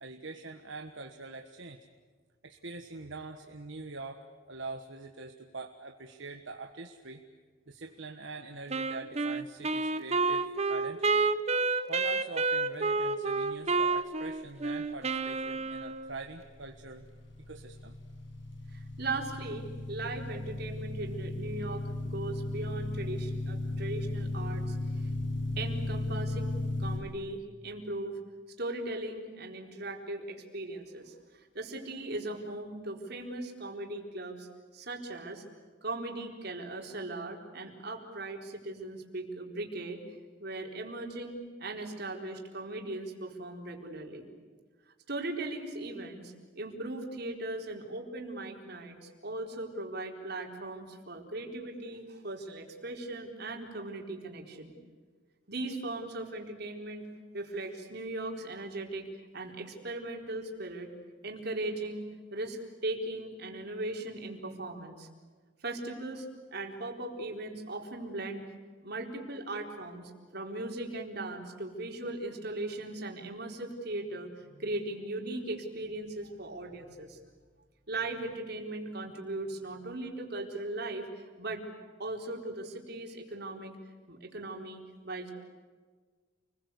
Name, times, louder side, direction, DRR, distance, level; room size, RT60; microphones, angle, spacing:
voice 1, 0.0-1.9 2.4-7.2 7.7-11.3 11.9-17.0 17.5-18.0, right 3 dB, 75° right, 4 dB, 1.5 m, -44 dB
Wind instrument woodwind instrument, 8.7-16.2, right 3 dB, 35° right, 1.0 m, -29 dB
sound 1, 16.1-27.0, left 2 dB, 75° left, 7.2 m, -36 dB
voice 2, 18.7-25.1 25.6-28.2 28.6-34.5 34.7-35.4 35.8-40.0 40.4-44.2 45.1-54.7 55.5-57.1 57.3-60.9 61.2-65.1 65.6-68.5 68.8-77.2 77.9-81.6 82.0-83.8 84.1-85.3, right 2 dB, 55° right, 1 dB, 4.2 m, -38 dB
29.0 x 21.5 x 8.3 m, 1.5 s
head